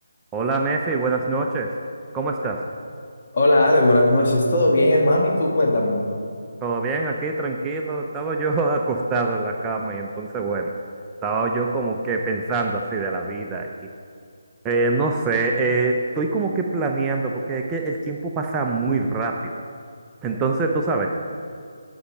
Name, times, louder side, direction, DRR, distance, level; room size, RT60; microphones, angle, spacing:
voice 1, 0.3-1.7 2.1-2.7 6.6-10.7 11.2-13.9 14.6-19.5 20.2-21.1, right 3 dB, 15° right, 1 dB, 0.5 m, -24 dB
voice 2, 3.3-6.0, left 1 dB, 45° left, -2 dB, 2.1 m, -18 dB
12.5 x 5.5 x 5.2 m, 2.3 s
figure-of-eight pair, 160°, 0 cm